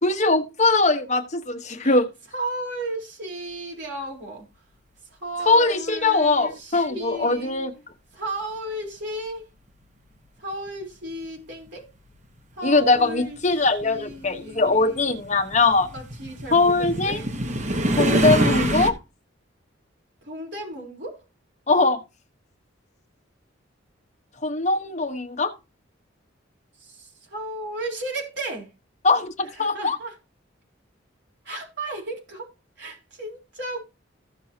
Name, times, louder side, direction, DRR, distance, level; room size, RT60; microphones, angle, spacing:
voice 1, 0.0-2.1 5.5-7.7 12.6-15.9 16.5-17.2 17.9-18.9 21.7-22.0 24.4-25.5 29.0-30.0, left 3 dB, 35° left, 1.2 m, -21 dB
voice 2, 2.3-4.5 5.0-7.6 8.1-9.4 10.4-11.9 12.6-13.4 13.8-15.2 15.9-17.3 20.2-21.2 26.8-28.7 29.5-30.1 31.4-33.8, right 1 dB, 60° right, 4.0 m, -34 dB
sound 1, 11.7-11.8 12.8-18.9, right 1 dB, 35° right, 1.0 m, -25 dB
15.0 x 6.2 x 2.9 m
head